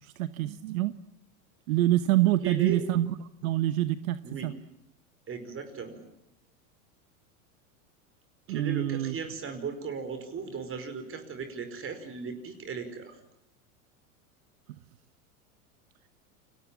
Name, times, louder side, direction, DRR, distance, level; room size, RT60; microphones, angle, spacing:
voice 1, 0.0-0.9 1.7-3.1 3.4-4.5 8.5-9.2, right 14 dB, 75° right, 13 dB, 1.1 m, -26 dB
voice 2, 2.4-2.9 4.2-4.5 5.3-6.0 8.5-13.2, right 6 dB, 30° right, 8 dB, 5.1 m, -36 dB
29.5 x 22.5 x 7.4 m, 0.78 s
hypercardioid pair, 110°, 42 cm